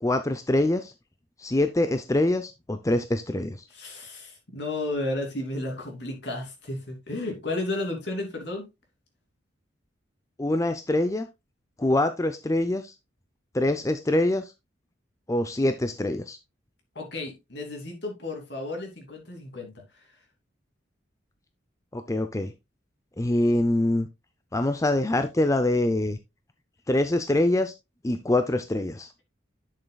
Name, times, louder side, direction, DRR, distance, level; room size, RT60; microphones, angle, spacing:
voice 1, 0.0-0.9 1.4-3.6 10.4-11.3 11.8-12.9 13.5-14.5 15.3-16.4 21.9-22.5 23.2-24.1 24.5-26.2 26.9-27.7 28.0-29.1, left 1 dB, 15° left, 9 dB, 0.5 m, -24 dB
voice 2, 3.7-8.6 16.9-20.0, left 2 dB, 65° left, 2 dB, 2.8 m, -33 dB
11.0 x 6.5 x 2.3 m, 0.23 s
head